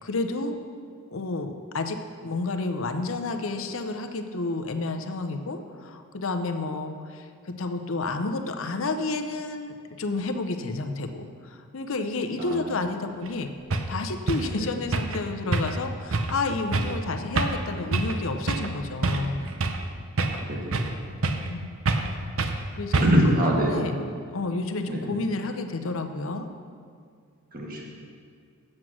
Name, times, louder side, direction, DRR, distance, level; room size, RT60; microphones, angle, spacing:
voice 1, 0.0-0.6 1.1-2.0 2.2-13.5 13.9-19.4 21.4-21.7 22.7-24.0 24.3-26.5, left 3 dB, 60° left, 6 dB, 0.7 m, -30 dB
sound 1, 13.3-13.4 13.7-13.9 14.3-14.5 14.9-15.2 15.5-15.8 16.1-16.3 16.7-17.0 17.4-17.6 17.9-18.2 18.5-18.7 19.0-19.9 20.2-21.0 21.2-21.5 21.9-22.1 22.4-22.6 22.9-23.3, right 3 dB, 60° right, 0.7 m, -26 dB
voice 2, 20.2-20.9 23.0-23.7 24.9-25.0 27.5-27.9, equal, 40° right, -1 dB, 1.5 m, -24 dB
8.0 x 7.5 x 6.2 m, 2.2 s
head